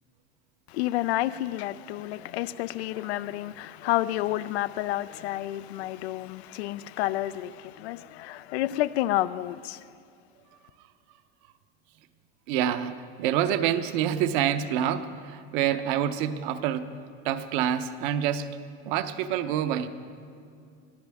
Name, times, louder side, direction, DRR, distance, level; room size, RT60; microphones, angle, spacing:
voice 1, 0.7-9.9, left 15 dB, 85° left, 0.5 m, -30 dB
voice 2, 12.5-16.9 17.2-18.6 18.8-19.9, right 10 dB, 50° right, 0.8 m, -27 dB
23.5 x 14.0 x 3.5 m
supercardioid pair, 160°, 32 cm